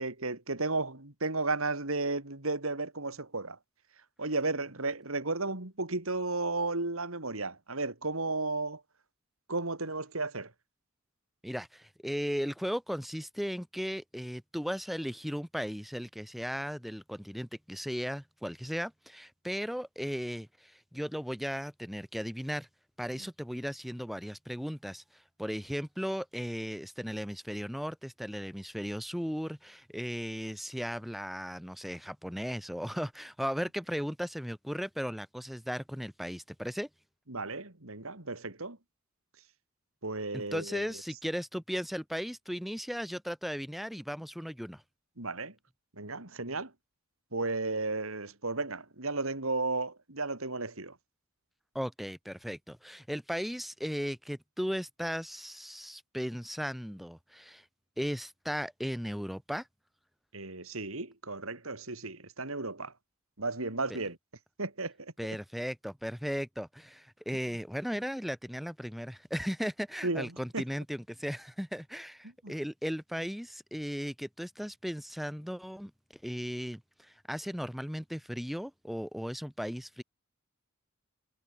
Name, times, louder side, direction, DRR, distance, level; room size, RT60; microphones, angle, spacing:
voice 1, 0.0-3.6 4.2-8.8 9.5-10.5 23.1-23.3 37.3-38.8 40.0-40.9 45.2-45.6 45.9-46.7 47.3-51.0 60.3-62.9 63.4-64.2 64.6-65.1 70.0-70.6 72.4-72.5, right 3 dB, 75° right, 3.6 m, -34 dB
voice 2, 11.4-22.7 23.0-25.0 25.4-36.9 40.3-44.8 51.7-57.6 58.0-59.7 63.9-64.0 65.2-75.9 76.2-76.8 77.3-80.0, equal, ahead, 2.3 m, -36 dB
head